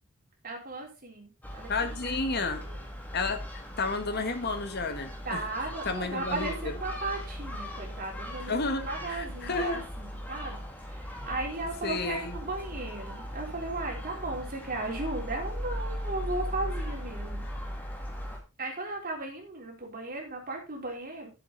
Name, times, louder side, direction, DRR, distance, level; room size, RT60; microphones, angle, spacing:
voice 1, 0.4-2.8 5.3-10.6 10.9-17.4 18.6-21.3, right 2 dB, 40° right, 0 dB, 3.8 m, -36 dB
Gull seagull, 1.4-18.4, equal, 10° left, 2.2 m, -38 dB
voice 2, 1.7-2.6 3.1-5.4 5.8-6.7 8.5-9.8 11.8-12.4, left 3 dB, 50° left, 7 dB, 1.6 m, -31 dB
11.0 x 7.8 x 4.0 m, 0.30 s
head